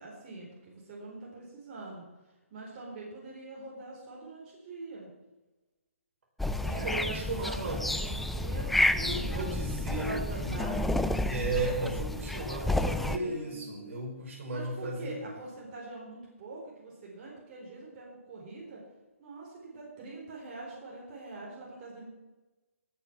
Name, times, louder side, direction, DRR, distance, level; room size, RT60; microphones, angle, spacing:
voice 1, 0.0-2.0 2.5-5.1 6.6-11.1 12.2-13.6 14.5-18.8 19.2-22.1, right 3 dB, 40° right, -3 dB, 4.2 m, -44 dB
sound 1, 6.4-13.2, left 1 dB, ahead, 0.4 m, -30 dB
voice 2, 6.6-7.9 9.0-10.9 11.2-15.1, right 2 dB, 60° right, -1 dB, 5.1 m, -35 dB
18.0 x 6.2 x 5.9 m, 1.1 s
hypercardioid pair, 145°, 8 cm